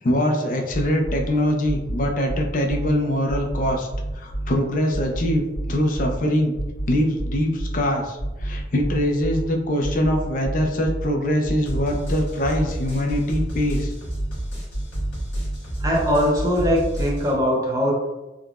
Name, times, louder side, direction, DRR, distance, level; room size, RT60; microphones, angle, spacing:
voice 1, 0.0-3.9 4.1-6.5 6.9-13.9, left 1 dB, 45° left, 2 dB, 0.5 m, -23 dB
sound 1, 0.7-1.3 1.6-2.9 3.3-4.5 4.9-6.2 6.5-7.8 8.2-9.4 9.8-11.1 11.4-17.3, right 1 dB, 85° left, 1.5 m, -29 dB
voice 2, 15.8-17.9, equal, 20° right, -3 dB, 0.5 m, -21 dB
3.6 x 2.2 x 2.3 m, 1.0 s
head